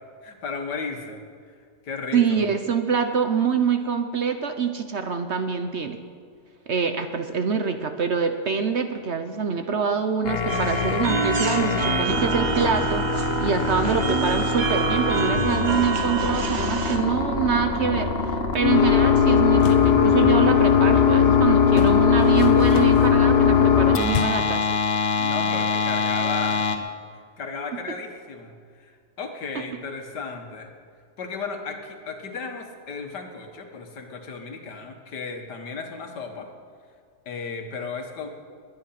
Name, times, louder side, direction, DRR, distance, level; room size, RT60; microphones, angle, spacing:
voice 1, 0.2-1.2 1.8-2.5 13.6-14.1 25.2-26.9 27.4-28.5 28.8-30.7 31.2-36.5 37.3-38.3, left 4 dB, 85° left, 4 dB, 2.1 m, -34 dB
voice 2, 2.1-6.0 6.7-24.7, right 6 dB, 50° right, 7 dB, 0.9 m, -25 dB
sound 1, 10.3-26.8, left 6 dB, 40° left, 1.2 m, -21 dB
sound 2, 10.5-17.0, right 5 dB, 75° right, 1.7 m, -28 dB
sound 3, 19.4-19.9 21.7-23.2 24.1-24.6, left 10 dB, 65° left, 1.1 m, -32 dB
20.5 x 9.9 x 5.8 m, 2.1 s
omnidirectional pair, 1.8 m